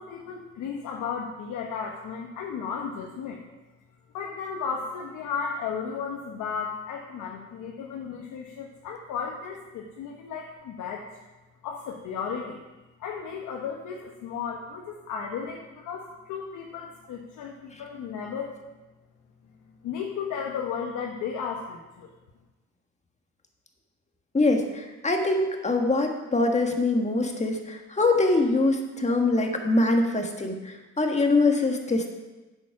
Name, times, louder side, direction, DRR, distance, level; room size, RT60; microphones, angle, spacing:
voice 1, 0.0-3.4 4.1-11.0 11.6-12.6 13.0-18.5 19.8-22.1, left 6 dB, 85° left, 0 dB, 1.2 m, -34 dB
voice 2, 24.3-32.1, left 2 dB, 25° left, 3 dB, 1.7 m, -24 dB
8.5 x 7.2 x 6.0 m, 1.1 s
cardioid pair, 90°, 30 cm